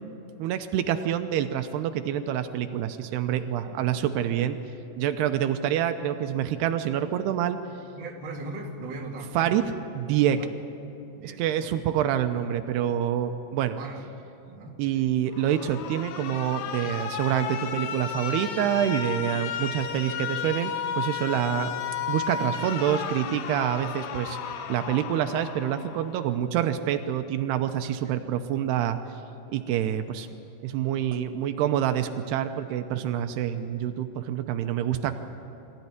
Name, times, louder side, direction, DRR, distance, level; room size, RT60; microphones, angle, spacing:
voice 1, 0.4-4.6 5.0-7.6 9.4-9.6 10.0-10.4 11.4-13.8 14.8-21.7 22.1-24.4 24.7-29.0 29.5-30.3 30.6-35.1, right 10 dB, 85° right, 8 dB, 2.8 m, -27 dB
voice 2, 8.0-9.6 10.3-10.5 11.1-11.8 13.8-14.0 14.5-15.1 28.0-28.2, right 2 dB, 35° right, -1 dB, 2.3 m, -39 dB
Alarm, 15.3-26.3, left 8 dB, 70° left, 2.3 m, -34 dB
24.0 x 15.5 x 9.7 m, 2.9 s
omnidirectional pair, 4.7 m